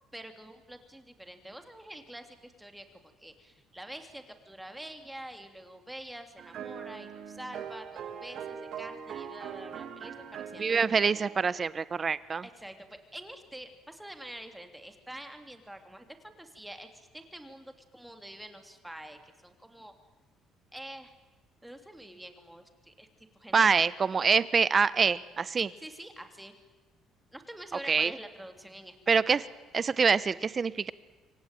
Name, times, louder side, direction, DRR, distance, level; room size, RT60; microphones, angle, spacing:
voice 1, 0.1-2.8 3.2-10.8 12.4-19.9 20.7-21.1 21.6-23.1 23.3-23.6 25.6-26.5 27.3-29.4, right 1 dB, 5° right, 6 dB, 3.0 m, -46 dB
sound 1, 6.4-11.4, right 8 dB, 60° right, 2.8 m, -41 dB
voice 2, 10.6-12.4 23.5-25.7 27.9-28.1 29.1-29.4 29.7-30.9, right 5 dB, 30° right, 17 dB, 1.0 m, -25 dB
27.0 x 24.0 x 9.2 m, 1.3 s
cardioid pair, 120°, 0 cm